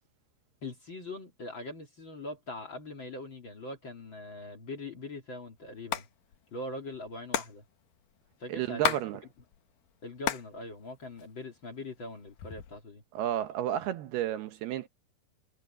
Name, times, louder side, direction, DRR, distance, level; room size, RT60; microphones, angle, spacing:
voice 1, 0.6-6.1 6.5-7.6 8.4-9.0 10.0-13.0, left 2 dB, 35° left, 2.6 m, -42 dB
Hands, 5.7-6.1 6.3-6.4 6.6-9.1 9.4-10.5 10.9-11.7 12.2-12.8, left 11 dB, 65° left, 2.6 m, -33 dB
voice 2, 8.5-9.2 13.1-14.9, right 12 dB, 75° right, 2.9 m, -32 dB
omnidirectional pair, 4.8 m